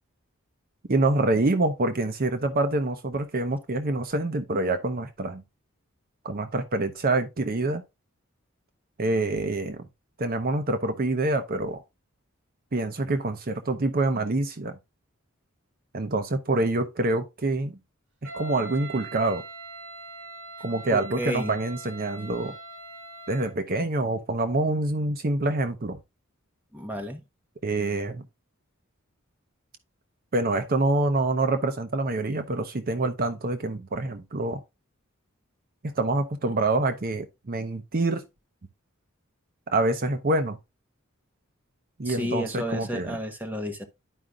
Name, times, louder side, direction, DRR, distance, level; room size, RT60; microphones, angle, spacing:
voice 1, 0.9-5.4 6.2-7.8 9.0-9.9 10.2-11.8 12.7-14.8 15.9-17.8 18.2-19.4 20.6-22.6 23.3-26.0 27.6-28.2 30.3-34.6 35.8-38.2 39.7-40.6 42.0-43.2, right 2 dB, 45° right, 0.7 m, -26 dB
Wind instrument woodwind instrument, 18.2-23.6, right 3 dB, 80° right, 3.7 m, -42 dB
voice 2, 20.9-21.6 26.7-27.2 42.0-43.8, equal, 10° right, 1.1 m, -32 dB
11.0 x 5.0 x 2.3 m
head